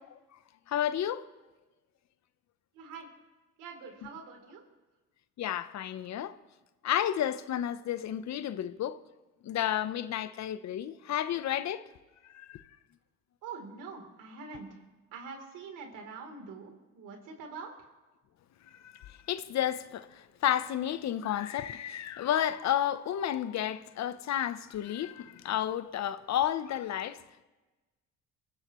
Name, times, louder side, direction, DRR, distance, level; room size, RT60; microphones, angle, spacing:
voice 1, 0.7-1.3 5.4-6.4 6.8-9.0 9.4-11.8 12.3-12.6 18.8-20.1 20.4-27.2, left 11 dB, 60° left, 0.8 m, -31 dB
voice 2, 2.7-3.1 3.6-4.6 13.4-14.8 15.1-17.9, right 5 dB, 80° right, 3.3 m, -44 dB
23.5 x 14.5 x 3.1 m
cardioid pair, 85°, 32 cm